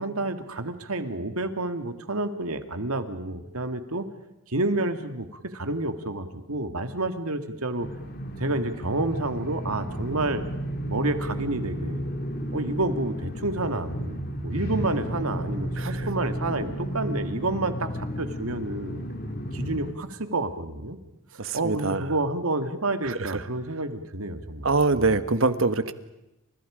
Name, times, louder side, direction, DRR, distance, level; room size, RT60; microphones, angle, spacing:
voice 1, 0.0-4.1 4.5-7.9 8.4-10.4 10.9-12.1 12.5-19.0 19.5-21.0 21.5-25.1, right 2 dB, 85° right, 8 dB, 2.2 m, -29 dB
sound 1, 7.8-19.9, equal, 45° left, 2.5 m, -32 dB
voice 2, 15.8-16.1 21.4-22.0 23.0-23.4 24.6-25.9, right 3 dB, 65° right, 11 dB, 1.4 m, -24 dB
30.0 x 27.0 x 5.1 m, 0.91 s
head